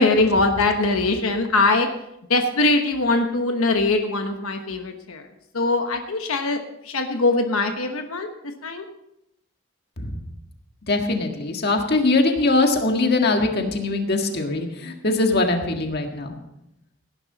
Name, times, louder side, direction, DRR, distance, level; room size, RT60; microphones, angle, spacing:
voice 1, 0.0-1.9 2.3-5.3 5.5-8.3 8.6-8.8, left 2 dB, 85° left, 5 dB, 1.1 m, -21 dB
voice 2, 10.9-16.3, left 2 dB, 50° left, 3 dB, 1.7 m, -22 dB
17.5 x 10.5 x 4.1 m, 0.83 s
head